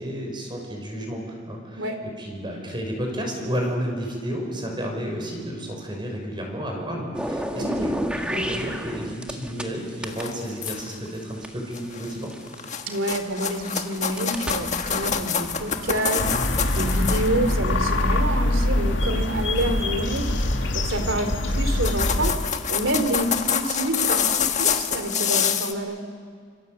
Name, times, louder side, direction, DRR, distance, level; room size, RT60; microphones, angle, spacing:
voice 1, 0.0-1.9 2.2-12.3, equal, 25° right, 2 dB, 5.6 m, -31 dB
sound 1, 7.1-9.7 10.0-13.0 13.6-17.1, equal, 5° right, 1.6 m, -32 dB
voice 2, 7.5-7.9 12.9-26.0, right 1 dB, 80° right, 8 dB, 2.9 m, -28 dB
sound 2, 10.0-11.1 11.7-12.1 12.5-17.6 19.6-19.8 20.2-20.5 21.3-21.4 21.6-25.7, left 7 dB, 35° left, 1.4 m, -27 dB
sound 3, 16.2-22.4, left 1 dB, 70° left, 2.4 m, -24 dB
27.0 x 26.0 x 7.8 m, 2.1 s
head